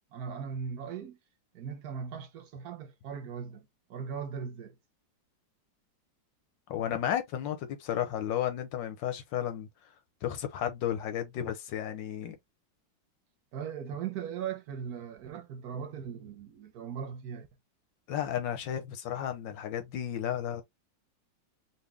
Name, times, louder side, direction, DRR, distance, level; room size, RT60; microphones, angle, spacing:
voice 1, 0.1-1.2 1.5-4.8 13.5-17.5, right 7 dB, 65° right, 1.1 m, -39 dB
voice 2, 6.7-9.7 10.2-12.4 18.1-20.6, left 10 dB, 90° left, 1.6 m, -33 dB
4.1 x 2.6 x 3.4 m
omnidirectional pair, 2.0 m